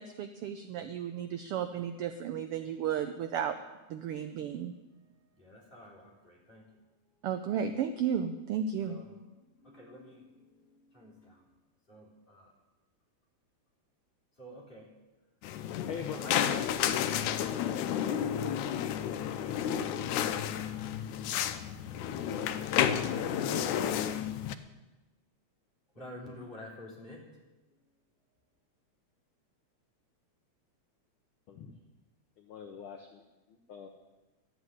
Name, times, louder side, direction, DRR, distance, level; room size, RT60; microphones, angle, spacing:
voice 1, 0.0-3.6 3.9-4.7 7.2-9.0, right 8 dB, 80° right, 8 dB, 1.3 m, -33 dB
voice 2, 5.4-6.6 8.8-9.1 9.6-10.2 10.9-11.4 11.9-12.5 14.4-14.9 16.1-17.5 25.9-27.2, left 1 dB, 15° left, -5 dB, 3.9 m, -49 dB
sound 1, 15.4-24.5, left 9 dB, 85° left, 2.1 m, -31 dB
voice 3, 15.8-16.5 31.5-31.8 32.4-33.9, left 6 dB, 60° left, 4 dB, 1.4 m, -43 dB
13.0 x 8.1 x 9.6 m, 1.1 s
omnidirectional pair, 3.3 m